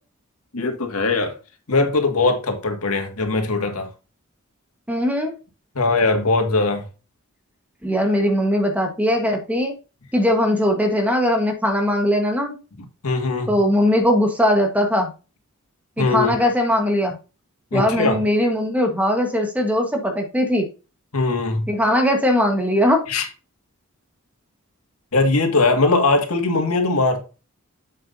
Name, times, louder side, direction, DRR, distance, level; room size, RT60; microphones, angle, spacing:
voice 1, 0.5-1.3 1.7-3.9 5.8-6.8 13.0-13.6 16.0-16.3 17.7-18.2 21.1-21.7 23.1-23.3 25.1-27.2, left 3 dB, 90° left, 2.0 m, -20 dB
voice 2, 4.9-5.3 7.8-9.7 10.1-12.5 13.5-15.1 16.0-17.1 17.7-20.6 21.7-23.0, equal, 5° right, 1.3 m, -20 dB
8.0 x 7.6 x 2.7 m
head